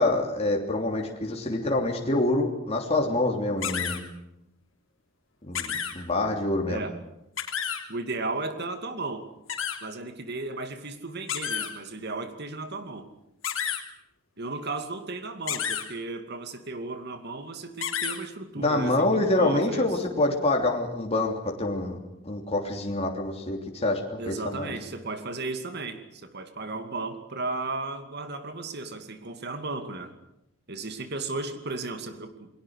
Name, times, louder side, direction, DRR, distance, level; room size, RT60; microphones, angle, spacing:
voice 1, 0.0-4.0 5.5-6.8 18.6-22.0 22.2-24.7, left 2 dB, 30° left, 1 dB, 3.2 m, -26 dB
sound 1, 3.6-4.0 5.5-5.9 7.4-7.8 9.5-9.8 11.3-11.7 13.4-13.8 15.5-15.8 17.8-18.2, left 8 dB, 85° left, 3.4 m, -30 dB
voice 2, 6.7-7.0 7.9-9.3 9.8-13.1 14.4-20.0 24.2-30.2 30.7-32.5, right 3 dB, 55° right, 8 dB, 2.4 m, -35 dB
28.5 x 21.0 x 6.5 m, 0.87 s
head